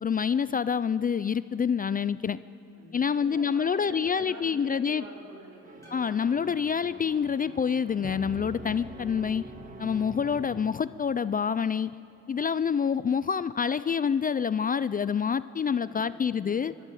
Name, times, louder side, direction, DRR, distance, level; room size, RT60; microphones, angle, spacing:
voice 1, 0.0-2.4 2.9-5.0 5.9-9.4 9.8-11.9 12.3-16.8, left 7 dB, 30° left, 16 dB, 0.4 m, -27 dB
voice 2, 2.7-6.6 15.7-16.5 16.8-16.9, right 2 dB, 65° right, -2 dB, 5.3 m, -47 dB
sound 1, 5.6-11.2, right 2 dB, 25° right, 1.8 m, -44 dB
sound 2, 5.8-8.1, left 1 dB, 10° left, 6.1 m, -59 dB
24.0 x 12.5 x 9.2 m, 2.6 s
cardioid pair, 90°, 30 cm